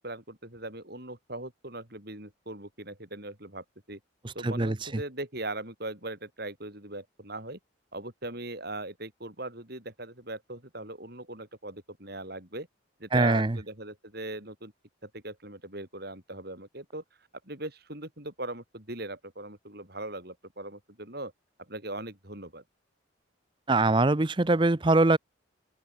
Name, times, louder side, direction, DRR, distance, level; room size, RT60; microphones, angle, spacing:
voice 1, 0.0-4.0 4.3-7.6 7.9-12.7 13.0-14.7 15.0-17.0 17.4-21.3 21.7-22.6, right 2 dB, 50° right, 5.8 m, -40 dB
voice 2, 4.4-4.7 13.1-13.6 23.7-25.2, right 2 dB, 25° right, 0.6 m, -22 dB
open air
head